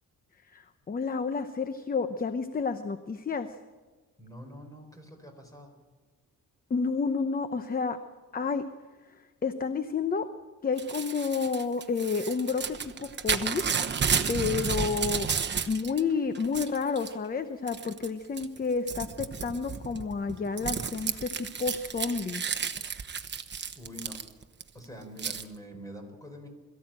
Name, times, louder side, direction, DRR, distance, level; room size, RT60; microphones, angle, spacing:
voice 1, 0.4-3.6 6.7-8.0 8.3-8.6 9.0-10.3 10.6-13.7 14.3-22.4, left 5 dB, 30° left, 10 dB, 0.8 m, -30 dB
voice 2, 4.2-5.7 23.7-24.2 24.7-26.5, equal, 10° left, 4 dB, 4.2 m, -45 dB
Crumpling crinkling / Tearing, 10.8-16.0 16.3-17.1 17.7-18.1 18.4-24.6 25.2-25.4, right 6 dB, 35° right, 1.0 m, -32 dB
22.0 x 14.5 x 8.9 m, 1.4 s
wide cardioid pair, 145°, 32 cm